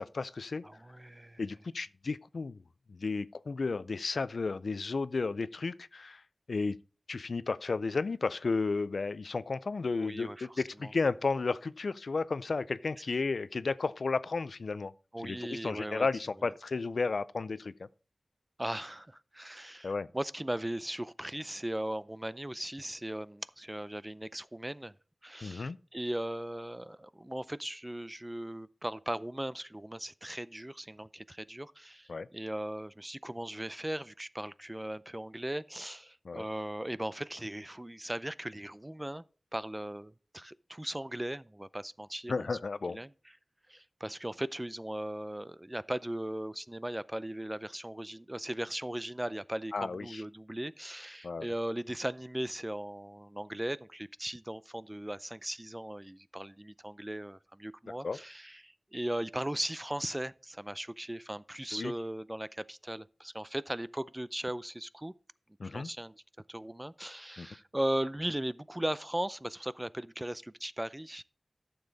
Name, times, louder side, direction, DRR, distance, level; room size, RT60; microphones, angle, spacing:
voice 1, 0.0-0.6 1.4-2.6 2.9-6.2 6.5-6.8 7.1-14.9 15.2-17.9 19.8-20.1 25.4-25.8 32.1-32.3 36.2-36.4 42.3-43.0 49.7-50.2 51.2-51.5 58.0-58.2 61.7-61.9 65.6-65.9 67.4-67.5, left 4 dB, 90° left, 0.4 m, -33 dB
voice 2, 0.6-1.4 10.0-10.9 15.1-16.1 18.6-24.9 25.2-39.2 39.5-42.5 42.9-43.1 43.7-65.1 65.6-66.2 66.5-71.2, right 1 dB, 20° right, 0.4 m, -38 dB
11.5 x 7.0 x 4.0 m
wide cardioid pair, 50°, 0 cm